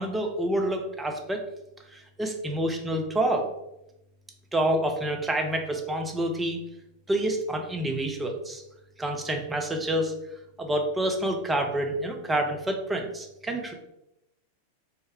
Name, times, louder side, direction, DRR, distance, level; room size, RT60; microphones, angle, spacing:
voice 1, 0.0-1.4 1.9-3.5 4.5-6.6 7.1-8.6 9.0-10.1 10.6-13.7, right 1 dB, 10° right, 3 dB, 0.5 m, -28 dB
3.4 x 2.1 x 3.3 m, 0.86 s
figure-of-eight pair, 90°, 0 cm